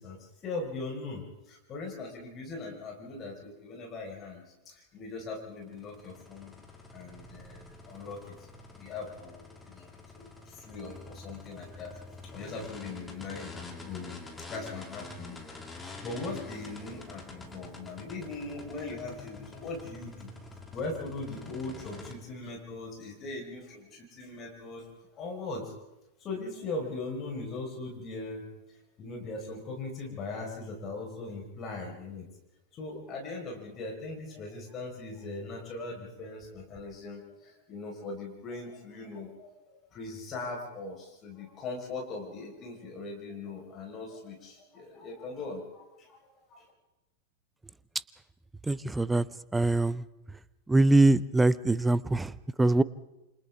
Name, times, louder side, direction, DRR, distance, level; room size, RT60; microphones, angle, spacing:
voice 1, 0.0-6.5 6.9-8.3 8.7-12.0 12.2-14.2 14.5-15.5 16.0-20.3 20.7-24.9 25.1-25.7 26.2-28.5 29.0-32.3 32.7-46.7, left 3 dB, 30° left, 0 dB, 4.6 m, -40 dB
sound 1, 5.5-22.1, left 3 dB, 10° left, 2.9 m, -47 dB
voice 2, 48.6-49.3 49.5-50.4 50.7-52.8, right 2 dB, 10° right, 19 dB, 0.6 m, -24 dB
28.5 x 26.0 x 3.6 m, 0.96 s
figure-of-eight pair, 90°, 0 cm